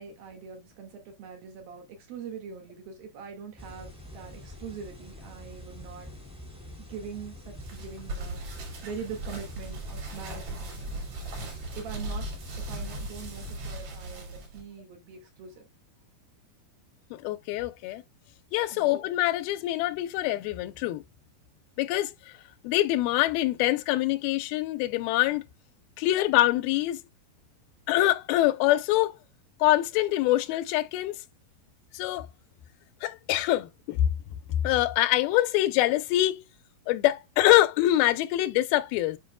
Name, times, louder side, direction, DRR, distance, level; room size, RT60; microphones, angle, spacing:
voice 1, 0.0-6.1 6.9-8.4 8.8-10.9 11.8-12.3 12.6-15.6 18.7-19.0, right 6 dB, 70° right, 3.7 m, -42 dB
sound 1, 3.6-13.5, left 1 dB, ahead, 1.4 m, -46 dB
sound 2, 7.5-14.6, right 1 dB, 50° right, 4.1 m, -38 dB
voice 2, 17.1-18.0 18.5-21.0 21.8-22.1 22.6-25.4 26.0-27.0 27.9-29.1 29.6-31.2 31.9-32.3 33.0-34.0 34.6-36.4 36.9-39.2, left 15 dB, 90° left, 2.5 m, -24 dB
9.3 x 5.3 x 2.3 m
omnidirectional pair, 4.3 m